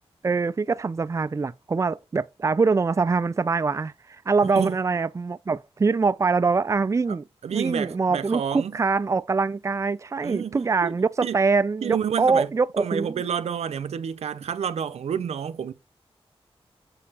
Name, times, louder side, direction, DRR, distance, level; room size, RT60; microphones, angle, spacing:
voice 1, 0.2-3.9 4.3-13.1, right 4 dB, 30° right, 0.4 m, -24 dB
voice 2, 4.4-4.8 7.1-7.2 7.4-8.8 10.2-10.9 11.2-11.4 11.8-12.5 12.8-15.7, right 8 dB, 90° right, 0.6 m, -29 dB
7.0 x 6.6 x 4.2 m
wide cardioid pair, 80°, 11 cm